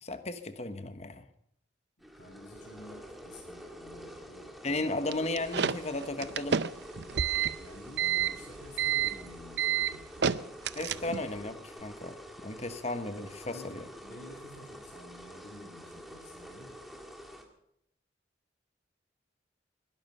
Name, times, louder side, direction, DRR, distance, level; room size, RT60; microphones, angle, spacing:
voice 1, 0.0-1.3 4.6-6.6 10.7-12.2 12.4-13.8, left 2 dB, 35° left, 10 dB, 1.1 m, -35 dB
sound 1, 2.0-17.4, equal, ahead, 1.8 m, -47 dB
voice 2, 2.1-4.9 7.6-10.3 10.8-11.0 13.4-16.8, left 1 dB, 65° left, -1 dB, 3.3 m, -51 dB
sound 2, 5.1-11.4, right 8 dB, 70° right, 0.6 m, -30 dB
21.0 x 11.5 x 5.5 m, 0.76 s
head